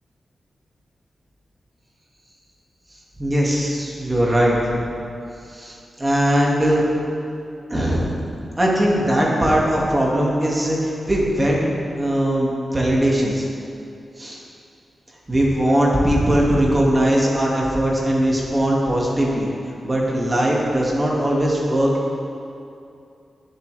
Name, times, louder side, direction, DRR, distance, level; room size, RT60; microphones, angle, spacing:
voice 1, 3.2-4.9 5.5-6.8 7.7-8.1 8.6-11.6 12.0-13.5 14.2-14.4 15.3-21.9, right 1 dB, 20° right, -4 dB, 2.0 m, -20 dB
20.0 x 7.6 x 3.4 m, 2.6 s
wide cardioid pair, 150°, 0 cm